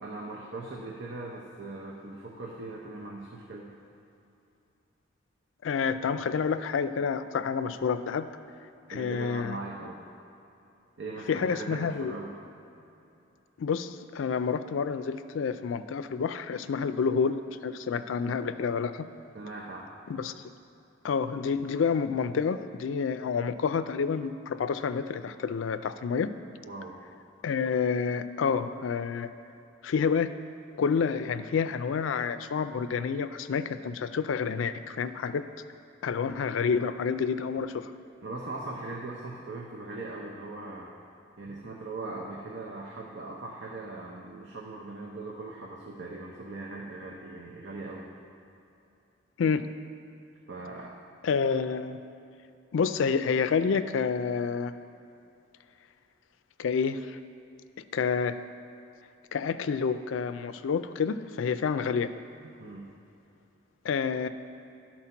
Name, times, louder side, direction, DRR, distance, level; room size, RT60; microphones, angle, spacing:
voice 1, 0.0-3.7 8.9-10.0 11.0-12.4 19.3-19.9 26.6-27.0 38.2-41.0 41.4-48.1 50.5-51.0 62.6-62.9, right 2 dB, 65° right, -3 dB, 0.8 m, -40 dB
voice 2, 5.6-8.3 8.9-9.6 11.3-12.2 13.6-19.1 20.1-20.3 21.0-26.3 27.4-29.3 29.8-30.3 30.8-35.4 36.0-37.9 49.4-49.6 51.2-52.0 52.7-54.7 56.6-57.2 57.8-58.4 59.3-62.1 63.8-64.3, left 6 dB, 80° left, 11 dB, 0.4 m, -29 dB
11.0 x 4.4 x 5.8 m, 2.8 s
head